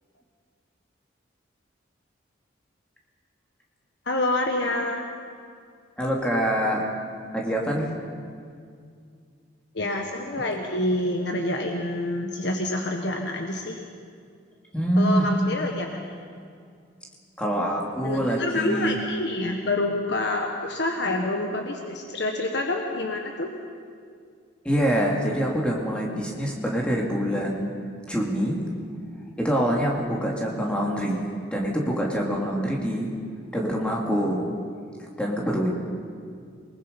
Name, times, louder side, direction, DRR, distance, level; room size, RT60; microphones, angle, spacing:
voice 1, 4.1-5.1 9.7-13.8 15.0-16.0 18.0-23.5, left 2 dB, 55° left, 2 dB, 1.5 m, -27 dB
voice 2, 6.0-6.9 7.3-7.9 14.7-15.2 17.4-19.0 24.6-27.7 28.1-28.6 29.4-33.1 33.5-34.5 35.0-35.7, equal, 5° left, -2 dB, 2.6 m, -25 dB
28.0 x 20.0 x 5.4 m, 2.2 s
head